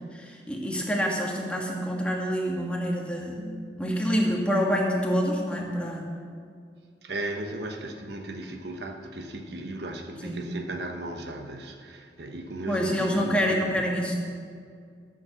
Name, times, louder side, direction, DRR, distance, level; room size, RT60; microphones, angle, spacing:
voice 1, 0.1-6.0 10.2-10.4 12.7-14.2, equal, 5° left, -1 dB, 1.6 m, -27 dB
voice 2, 7.0-13.9, right 1 dB, 70° right, 4 dB, 1.1 m, -36 dB
13.0 x 7.1 x 7.0 m, 2.2 s
head